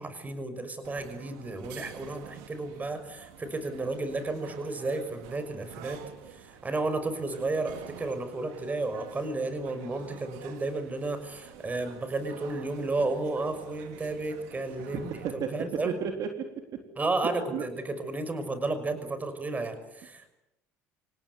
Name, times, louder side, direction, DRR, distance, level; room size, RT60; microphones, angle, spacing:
voice 1, 0.0-6.0 6.3-16.0 17.0-20.3, right 2 dB, 25° right, 10 dB, 5.9 m, -32 dB
sound 1, 0.8-15.3, right 9 dB, 80° right, 3.4 m, -48 dB
voice 2, 14.9-16.8 17.5-17.6, right 7 dB, 60° right, 5 dB, 3.6 m, -33 dB
28.0 x 18.0 x 9.7 m, 0.87 s
supercardioid pair, 85°, 7 cm